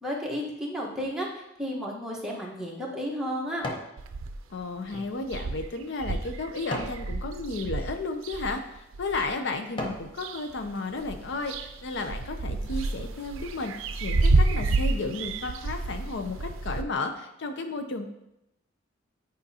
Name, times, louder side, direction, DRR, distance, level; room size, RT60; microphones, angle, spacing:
voice 1, 0.0-3.7, equal, 5° right, -4 dB, 1.2 m, -33 dB
sound 1, 2.1-4.0 4.4-7.0 7.6-7.9 8.6-8.7 9.2-10.1 10.6-10.7, left 1 dB, 25° left, 0.8 m, -39 dB
sound 2, 4.0-4.6 4.9-5.0 5.2-9.3 9.8-10.7 11.0-16.8, right 3 dB, 80° right, 0.5 m, -29 dB
voice 2, 4.5-18.1, left 3 dB, 60° left, 6 dB, 0.5 m, -33 dB
9.0 x 5.0 x 2.8 m, 0.85 s
head